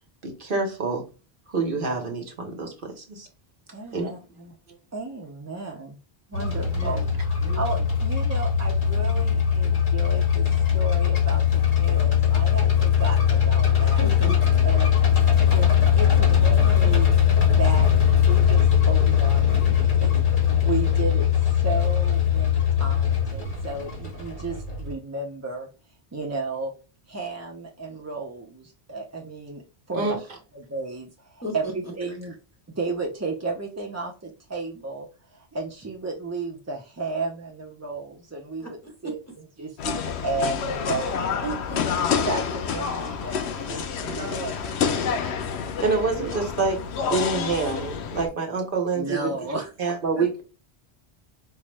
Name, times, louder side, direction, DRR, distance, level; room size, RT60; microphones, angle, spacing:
voice 1, 0.2-1.0 1.5-3.3 3.9-4.1 29.9-30.2 45.8-49.3 49.8-50.4, right 4 dB, 55° right, 2 dB, 1.0 m, -27 dB
voice 2, 3.7-4.5 4.9-6.0 6.3-10.5 10.7-14.0 14.6-15.0 15.5-15.7 16.0-17.1 17.5-17.9 18.2-25.7 26.1-26.7 27.1-29.6 29.9-30.2 30.5-32.4 32.7-35.1 35.3-39.2 39.6-41.4 42.3-43.8 44.2-45.7 46.2-46.3 48.9-49.7 50.2-50.3, right 3 dB, 25° right, 0 dB, 0.3 m, -33 dB
sound 1, 6.3-24.9, left 9 dB, 50° left, 1.3 m, -20 dB
voice 3, 6.4-7.1 7.4-7.8 14.0-14.5 20.5-20.9 31.4-31.7 38.6-39.3 41.4-42.0 43.7-44.4, right 1 dB, 15° left, 0 dB, 1.0 m, -37 dB
sound 2, 39.8-48.3, left 6 dB, 85° left, 0.9 m, -28 dB
4.4 x 2.0 x 3.2 m, 0.32 s
omnidirectional pair, 1.1 m